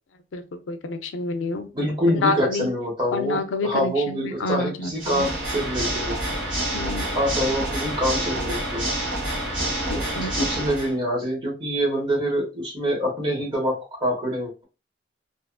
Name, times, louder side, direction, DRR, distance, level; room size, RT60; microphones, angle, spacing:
voice 1, 0.3-1.7 2.1-2.7 3.1-5.3 6.7-7.2 9.9-10.5, left 3 dB, 90° left, 0.4 m, -28 dB
voice 2, 1.7-6.2 7.1-8.8 9.9-14.6, equal, 25° right, 1.2 m, -25 dB
Water / Mechanisms, 4.9-10.9, right 1 dB, 85° right, 1.4 m, -27 dB
2.7 x 2.4 x 2.3 m
head